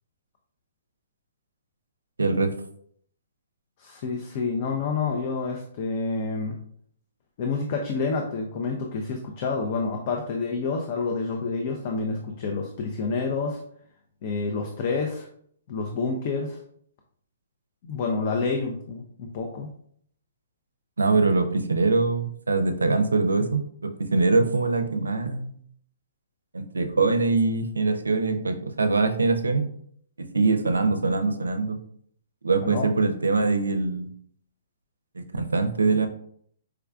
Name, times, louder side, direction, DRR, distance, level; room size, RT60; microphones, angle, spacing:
voice 1, 2.2-2.5 21.0-25.5 26.5-29.7 30.2-31.8 32.4-34.1 35.2-36.1, right 3 dB, 85° right, 7 dB, 0.4 m, -23 dB
voice 2, 3.8-6.6 7.4-13.6 14.2-15.3 15.7-16.6 17.8-19.7 32.6-32.9, left 4 dB, 45° left, 2 dB, 0.4 m, -28 dB
4.6 x 2.3 x 2.3 m, 0.64 s
hypercardioid pair, 125°, 0 cm